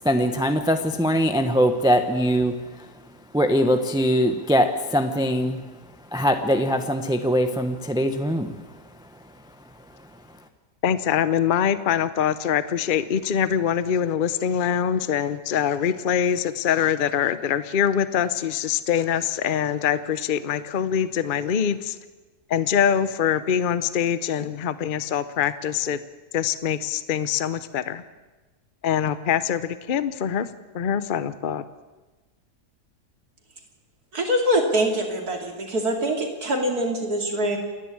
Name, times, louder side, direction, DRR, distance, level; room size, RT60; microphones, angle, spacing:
voice 1, 0.0-2.6 3.3-5.6 6.1-8.5, equal, 5° right, 7 dB, 0.7 m, -22 dB
voice 2, 10.8-22.0 22.5-26.0 26.3-28.0 28.8-30.5 30.7-31.6, left 8 dB, 45° left, 14 dB, 0.7 m, -24 dB
voice 3, 34.1-37.6, equal, 65° right, 2 dB, 3.3 m, -24 dB
28.5 x 11.0 x 8.7 m, 1.2 s
omnidirectional pair, 1.7 m